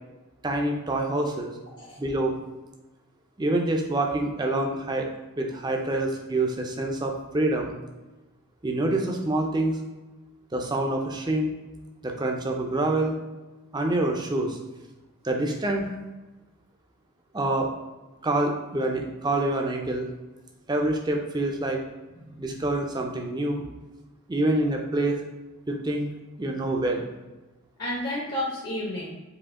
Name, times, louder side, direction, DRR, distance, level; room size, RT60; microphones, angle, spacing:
voice 1, 0.4-1.5 2.0-2.4 3.4-5.1 5.4-7.7 8.6-9.8 10.5-11.6 12.0-13.2 13.7-14.6 15.2-15.9 17.3-17.7 18.2-20.1 20.7-21.8 22.4-23.6 24.3-25.2 25.7-26.1 26.4-27.1, right 2 dB, 20° right, 2 dB, 0.5 m, -26 dB
voice 2, 22.2-22.5 27.8-29.2, left 1 dB, 45° left, -5 dB, 0.9 m, -32 dB
5.0 x 2.7 x 3.6 m, 1.2 s
head